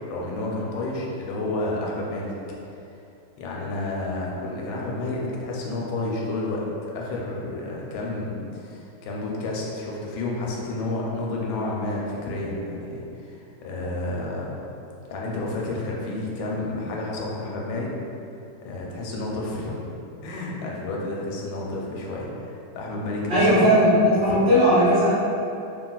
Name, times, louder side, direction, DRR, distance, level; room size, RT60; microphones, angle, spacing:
voice 1, 0.1-2.3 3.4-13.4 13.6-14.6 15.1-17.9 18.6-23.6 24.3-24.6, left 2 dB, 90° left, -3 dB, 1.3 m, -30 dB
voice 2, 23.3-25.1, equal, 60° right, -14 dB, 0.8 m, -17 dB
2.9 x 2.8 x 2.3 m, 2.7 s
omnidirectional pair, 2.1 m